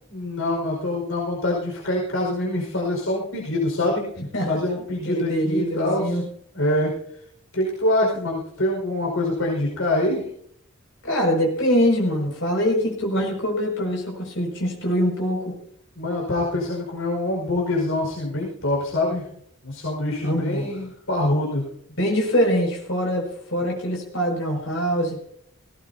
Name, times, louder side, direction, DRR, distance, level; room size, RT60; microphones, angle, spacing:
voice 1, 0.1-4.0 4.5-6.2 6.5-6.9 7.5-10.2 16.0-19.3 19.6-21.7, left 1 dB, 85° left, -2 dB, 5.3 m, -25 dB
voice 2, 4.2-4.5 5.0-6.2 11.0-15.5 20.2-20.6 22.0-25.2, equal, 65° left, 0 dB, 6.5 m, -23 dB
19.0 x 18.0 x 2.8 m, 0.66 s
head